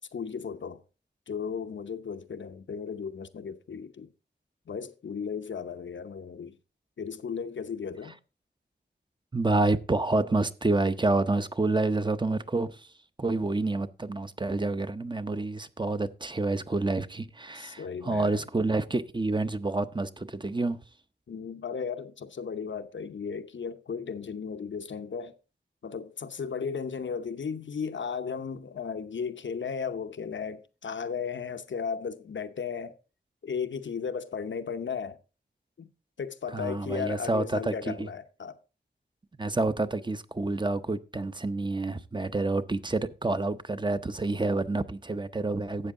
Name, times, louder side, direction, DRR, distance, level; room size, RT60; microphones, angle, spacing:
voice 1, 0.1-0.8 1.3-4.1 4.7-6.5 7.0-8.2 17.5-18.4 21.3-25.4 25.8-33.0 33.4-35.2 35.8-35.9 36.2-38.6, left 6 dB, 80° left, 0.8 m, -35 dB
voice 2, 9.3-12.9 13.2-20.8 36.5-38.1 39.4-45.9, right 2 dB, 25° right, 0.7 m, -28 dB
12.5 x 8.2 x 3.7 m
wide cardioid pair, 75°, 19 cm